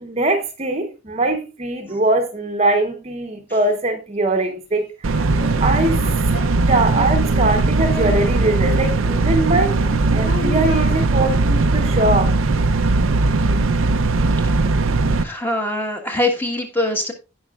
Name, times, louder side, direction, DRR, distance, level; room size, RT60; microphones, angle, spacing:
voice 1, 0.0-4.9 5.6-6.0 6.7-9.8 10.1-12.3, right 2 dB, 30° right, 0.9 m, -21 dB
Singing, 4.5-4.6 5.1-8.3 8.6-10.9, left 1 dB, 45° left, 2.3 m, -32 dB
sound 1, 5.0-15.2, right 3 dB, 85° right, 0.6 m, -19 dB
voice 2, 15.2-17.1, left 1 dB, 10° left, 1.4 m, -22 dB
16.5 x 5.5 x 2.4 m
head